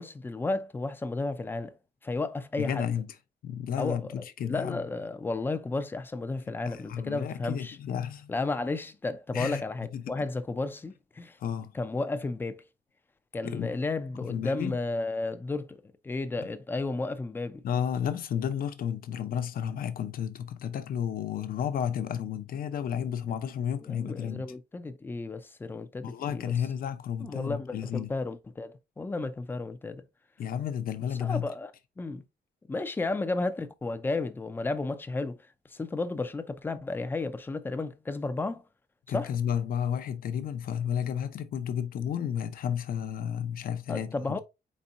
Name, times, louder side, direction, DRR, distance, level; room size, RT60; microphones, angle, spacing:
voice 1, 0.0-1.7 2.0-2.8 3.8-4.1 4.4-7.8 8.3-11.4 11.7-12.6 13.3-15.8 16.0-17.6 23.8-26.5 27.2-30.0 31.2-31.7 32.0-32.2 32.7-35.4 35.7-38.6 39.1-39.3 43.9-44.4, left 3 dB, 10° left, 0.4 m, -33 dB
voice 2, 2.6-3.1 3.4-4.8 6.5-8.3 9.3-9.6 9.9-10.1 11.4-11.7 13.4-13.7 14.2-14.8 16.4-16.5 17.6-24.5 26.0-28.1 30.4-31.5 39.1-44.4, left 8 dB, 55° left, 0.6 m, -32 dB
4.4 x 4.2 x 2.5 m
cardioid pair, 165°, 18 cm